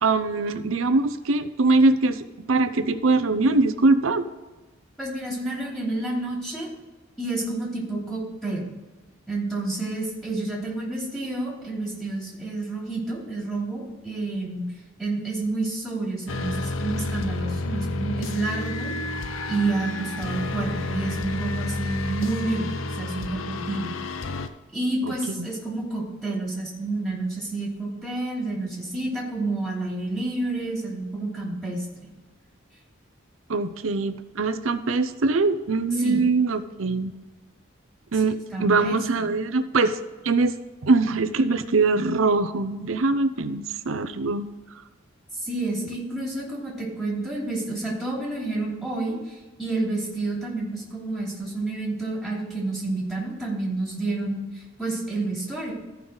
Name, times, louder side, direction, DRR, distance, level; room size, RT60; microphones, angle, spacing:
voice 1, 0.0-4.3 25.0-25.5 33.5-37.1 38.1-40.0 40.2-40.5 40.8-44.5, right 3 dB, 80° right, 11 dB, 0.7 m, -22 dB
voice 2, 5.0-6.7 7.2-8.6 9.3-14.6 15.0-23.9 24.7-32.1 36.0-36.2 38.5-39.3 45.4-49.3 49.6-54.5 54.8-55.7, right 2 dB, ahead, -5 dB, 3.0 m, -29 dB
sound 1, 16.3-24.5, left 2 dB, 75° left, 0.6 m, -30 dB
14.5 x 5.5 x 3.9 m, 1.2 s
head